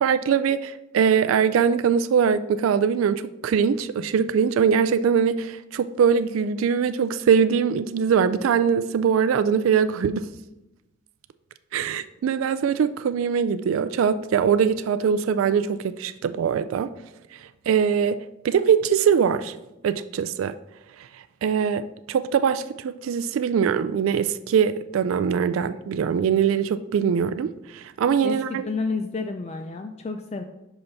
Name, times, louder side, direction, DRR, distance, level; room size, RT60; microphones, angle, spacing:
voice 1, 0.0-10.3 11.7-16.9 17.7-19.5 19.8-20.5 21.4-28.6, right 7 dB, 90° right, 0.3 m, -22 dB
voice 2, 28.2-30.4, left 3 dB, 30° left, 0.3 m, -30 dB
5.7 x 5.5 x 4.0 m
head